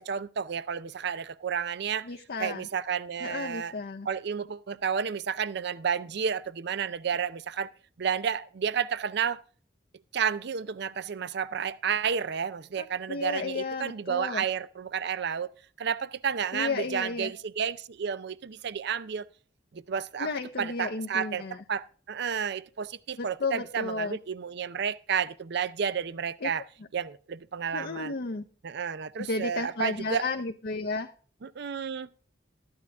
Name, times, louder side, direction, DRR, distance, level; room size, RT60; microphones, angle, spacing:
voice 1, 0.0-2.1 2.4-3.7 4.0-7.7 8.0-9.4 10.1-15.5 15.8-19.2 19.7-20.3 20.6-21.4 21.7-26.6 26.9-28.1 28.6-30.3 31.4-32.1, right 7 dB, 65° right, 0.5 m, -31 dB
voice 2, 2.0-2.7 3.2-4.1 12.8-14.4 16.5-17.3 20.2-21.6 23.2-24.2 26.4-26.5 27.7-28.5 29.2-31.1, left 3 dB, 55° left, 0.7 m, -33 dB
13.5 x 9.7 x 3.5 m
head